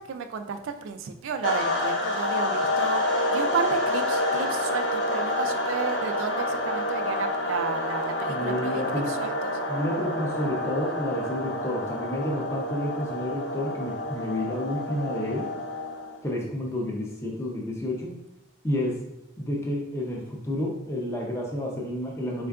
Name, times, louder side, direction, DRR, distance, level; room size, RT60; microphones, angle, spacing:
voice 1, 0.0-3.0 3.3-9.5, right 5 dB, 75° right, 8 dB, 0.3 m, -32 dB
sound 1, 1.4-16.2, left 1 dB, 60° left, 0.8 m, -28 dB
voice 2, 8.3-9.1 9.7-15.5 16.2-18.2 18.6-19.1 19.4-22.5, left 1 dB, 15° left, -1 dB, 0.4 m, -30 dB
4.3 x 2.3 x 2.3 m, 0.87 s
head